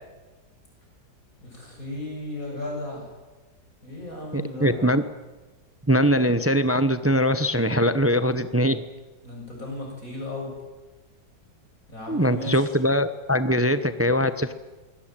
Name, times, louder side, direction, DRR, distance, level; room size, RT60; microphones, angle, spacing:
voice 1, 1.4-3.1 3.8-5.0 9.2-10.6 11.9-12.7, left 2 dB, 50° left, 0 dB, 7.8 m, -35 dB
voice 2, 4.3-5.0 5.9-8.8 12.1-14.5, equal, 15° right, 11 dB, 0.4 m, -22 dB
23.5 x 17.5 x 9.0 m, 1.2 s
omnidirectional pair, 1.9 m